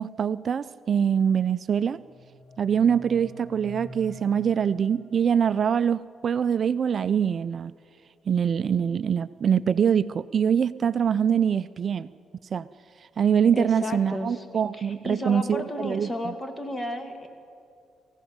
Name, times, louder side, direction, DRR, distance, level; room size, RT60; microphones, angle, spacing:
voice 1, 0.0-2.0 2.6-7.7 8.3-12.1 12.5-12.7 13.2-16.3, right 7 dB, 50° right, 15 dB, 0.4 m, -24 dB
sound 1, 1.7-5.7, equal, 90° left, 4.0 m, -46 dB
voice 2, 13.5-14.4 14.7-17.3, left 1 dB, 20° left, 7 dB, 2.5 m, -33 dB
24.5 x 15.5 x 7.2 m, 2.4 s
cardioid pair, 90°, 0 cm